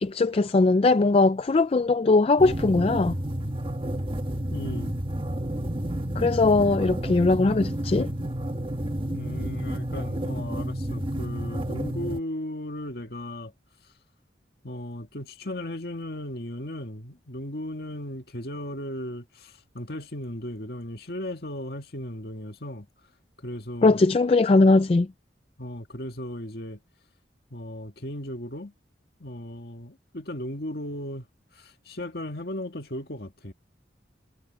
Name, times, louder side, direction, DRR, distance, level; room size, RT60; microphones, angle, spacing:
voice 1, 0.0-3.2 6.2-8.1 23.8-25.1, left 3 dB, 30° left, 0.4 m, -20 dB
sound 1, 2.4-12.2, right 1 dB, 30° right, 1.4 m, -30 dB
voice 2, 4.5-5.0 9.1-13.5 14.6-22.9 23.4-24.0 25.6-26.8 27.5-28.7 29.2-31.3 31.6-33.5, left 1 dB, 60° left, 2.0 m, -36 dB
head